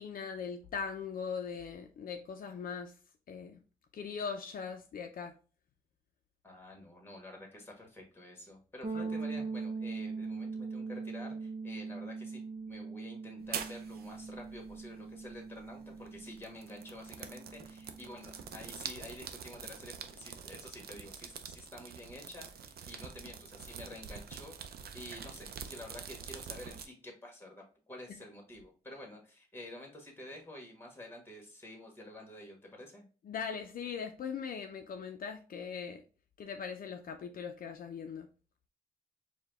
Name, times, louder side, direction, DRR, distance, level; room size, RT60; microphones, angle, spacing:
voice 1, 0.0-2.9 3.3-3.6 3.9-5.3 8.9-9.1 33.3-36.0 36.4-38.3, left 6 dB, 65° left, 0.4 m, -40 dB
voice 2, 6.4-12.4 12.7-33.0, left 1 dB, 15° left, 1.3 m, -49 dB
sound 1, 8.8-18.5, right 4 dB, 40° right, 0.7 m, -41 dB
sound 2, 13.4-26.9, right 7 dB, 85° right, 0.5 m, -46 dB
4.7 x 2.2 x 3.3 m
wide cardioid pair, 120°, 15 cm